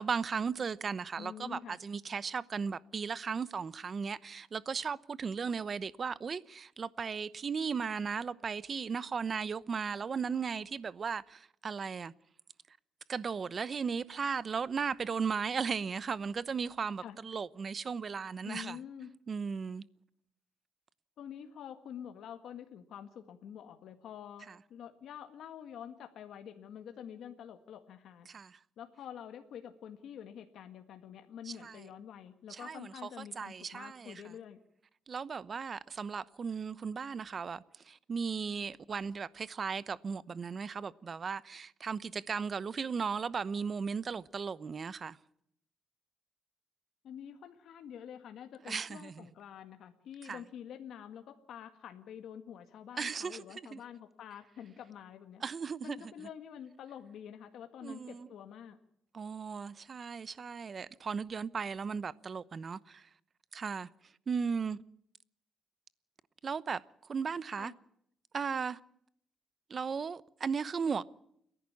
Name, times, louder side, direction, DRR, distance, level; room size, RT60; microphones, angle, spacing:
voice 1, 0.0-12.1 13.1-18.8 19.3-19.8 24.5-24.6 28.3-28.6 31.5-31.8 32.5-34.2 35.1-45.2 48.7-49.3 50.2-50.4 53.0-53.4 53.7-53.8 55.4-56.0 57.8-58.3 59.1-63.1 63.5-63.9 64.3-64.8 66.4-66.8 67.1-67.7 68.3-68.8 69.7-71.0, right 5 dB, 45° right, 0.9 m, -36 dB
voice 2, 1.2-1.8 17.0-17.2 18.4-19.1 21.2-28.3 28.8-34.6 47.0-55.4 55.8-58.8 67.6-67.8, left 9 dB, 75° left, 1.8 m, -47 dB
29.5 x 11.0 x 8.5 m
cardioid pair, 90°, 0 cm